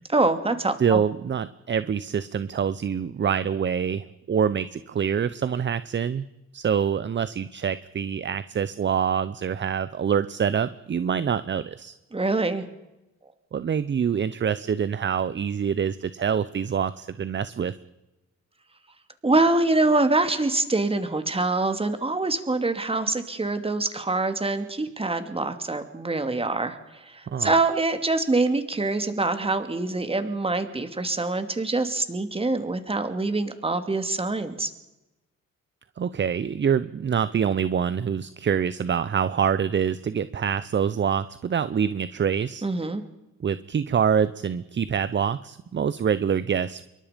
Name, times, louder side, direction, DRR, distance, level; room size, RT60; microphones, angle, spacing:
voice 1, 0.1-1.0 12.1-12.6 19.2-34.7 42.6-43.0, right 2 dB, 20° right, 8 dB, 2.7 m, -25 dB
voice 2, 0.8-6.2 6.5-11.9 13.5-17.7 27.3-27.6 36.0-42.6 43.4-46.9, right 7 dB, 40° right, 15 dB, 0.9 m, -25 dB
27.0 x 23.0 x 5.3 m, 0.99 s
cardioid pair, 90°, 30 cm